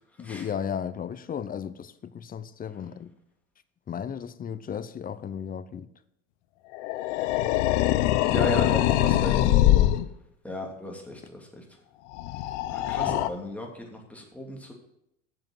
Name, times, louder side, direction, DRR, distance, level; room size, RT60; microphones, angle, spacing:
voice 1, 0.2-3.1 3.9-5.9 8.5-8.8 9.3-10.0, left 8 dB, 25° left, 0.7 m, -35 dB
sound 1, 6.7-10.1 12.1-13.3, left 14 dB, 65° left, 0.7 m, -23 dB
voice 2, 8.3-9.5 10.4-11.6 12.7-14.7, left 1 dB, 5° left, 2.8 m, -35 dB
7.7 x 7.5 x 7.7 m
hypercardioid pair, 85°, 37 cm